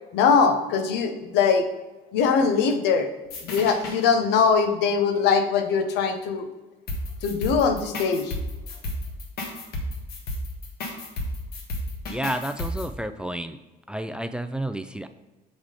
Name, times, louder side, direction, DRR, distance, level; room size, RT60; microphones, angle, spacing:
voice 1, 0.1-1.6 2.1-3.1 3.4-6.5 7.2-8.4, left 5 dB, 85° left, 6 dB, 0.8 m, -21 dB
sound 1, 3.3-4.0 6.9-12.9, left 1 dB, 70° left, 1.3 m, -32 dB
voice 2, 12.1-13.6 13.9-15.1, right 1 dB, 5° right, 10 dB, 0.3 m, -30 dB
7.3 x 3.6 x 4.9 m, 1.1 s
cardioid pair, 110°, 17 cm